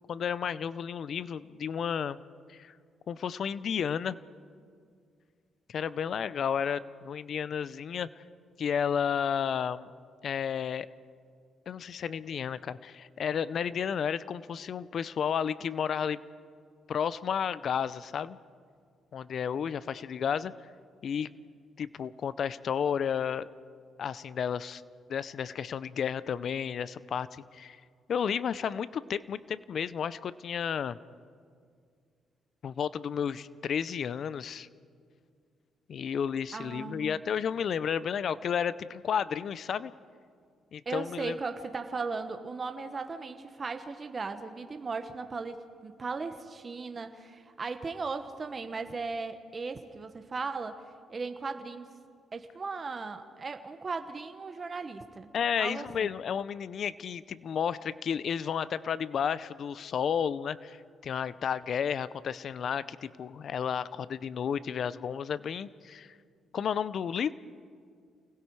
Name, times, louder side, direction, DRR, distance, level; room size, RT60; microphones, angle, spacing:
voice 1, 0.1-2.2 2.5-2.7 3.1-4.2 5.7-8.1 8.6-9.9 10.2-10.9 11.7-16.2 16.9-18.4 19.1-20.5 21.0-21.3 21.8-23.5 24.0-24.8 25.1-27.8 28.1-31.0 32.6-34.7 35.9-39.9 40.7-41.4 55.3-66.2 66.5-67.3, left 7 dB, 60° left, 17 dB, 0.6 m, -32 dB
voice 2, 36.5-37.2 40.8-50.8 51.1-51.9 52.3-55.3 55.6-56.1, right 4 dB, 35° right, 8 dB, 1.2 m, -37 dB
29.5 x 19.5 x 4.8 m, 2.2 s
cardioid pair, 90°, 0 cm